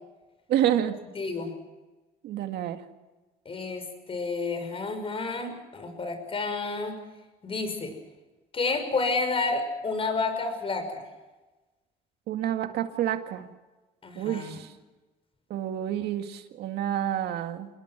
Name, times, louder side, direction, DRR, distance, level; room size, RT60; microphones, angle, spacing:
voice 1, 0.5-1.0 2.2-2.8 12.3-13.5 14.2-14.7 15.5-17.7, right 11 dB, 75° right, 7 dB, 2.1 m, -28 dB
voice 2, 1.1-1.5 3.4-7.0 7.4-8.0 8.5-11.0 14.0-14.6, left 3 dB, 35° left, 7 dB, 6.3 m, -30 dB
28.0 x 21.0 x 6.1 m, 1.1 s
cardioid pair, 110°, 17 cm